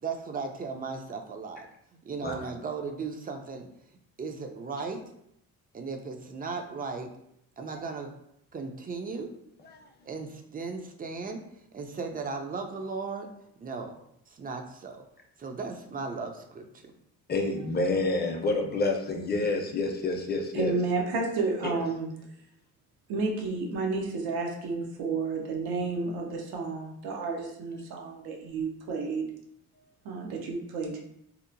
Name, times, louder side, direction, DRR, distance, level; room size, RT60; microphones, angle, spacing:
voice 1, 0.0-1.7 2.0-3.7 4.2-5.0 5.7-7.1 7.6-8.1 8.5-9.3 10.1-11.4 11.7-13.3 13.6-14.0 14.3-15.0 15.4-16.8, right 4 dB, 25° right, 4 dB, 0.4 m, -36 dB
voice 2, 17.3-20.8 21.6-21.8, left 2 dB, 25° left, 2 dB, 0.6 m, -28 dB
voice 3, 20.5-22.1 23.1-29.3 30.0-31.0, right 4 dB, 85° right, 1 dB, 0.7 m, -31 dB
2.8 x 2.0 x 2.5 m, 0.74 s
cardioid pair, 85°, 36 cm